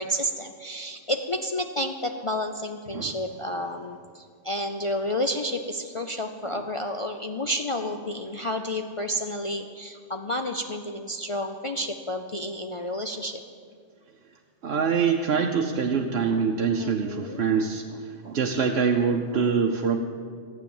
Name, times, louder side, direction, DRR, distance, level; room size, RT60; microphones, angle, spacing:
voice 1, 0.0-13.4 16.8-17.5, left 1 dB, 50° left, 4 dB, 0.3 m, -30 dB
voice 2, 14.6-20.0, right 6 dB, 60° right, 1 dB, 0.9 m, -25 dB
15.0 x 9.0 x 7.1 m, 2.1 s
omnidirectional pair, 1.3 m